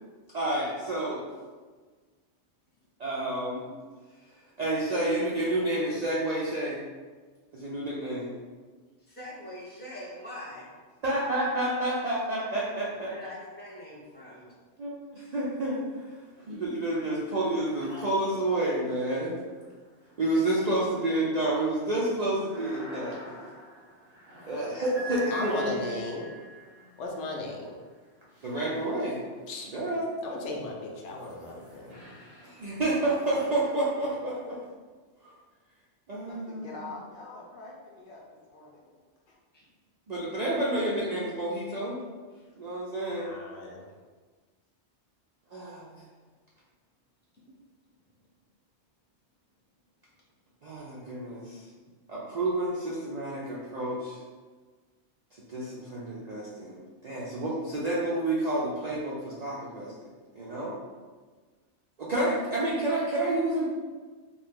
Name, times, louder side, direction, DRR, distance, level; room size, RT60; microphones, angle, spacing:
voice 1, 0.3-1.2 3.0-3.7 4.2-6.8 7.5-8.3 11.0-13.1 14.8-16.2 16.5-19.3 20.2-23.3 24.5-25.8 28.4-29.2 29.6-30.1 32.4-34.6 35.2-35.3 36.1-36.7 40.1-42.0 42.5-43.3 45.5-46.0 50.6-51.7 52.1-54.2 55.5-59.9 60.3-60.7 62.0-63.6, right 1 dB, 60° right, -6 dB, 0.4 m, -29 dB
voice 2, 9.0-10.7 12.9-14.5 39.5-39.6 51.5-51.6, left 1 dB, 10° left, -6 dB, 0.7 m, -43 dB
sound 1, 15.3-16.0 16.4-29.5 30.2-34.7, right 2 dB, 40° right, 0.8 m, -47 dB
voice 3, 25.3-26.3 27.0-27.6 29.5-29.7 30.2-32.0 43.1-43.8, left 2 dB, 80° left, 0 dB, 0.9 m, -36 dB
voice 4, 36.3-39.1, left 3 dB, 60° left, -4 dB, 0.6 m, -45 dB
2.7 x 2.4 x 3.6 m, 1.4 s
omnidirectional pair, 1.2 m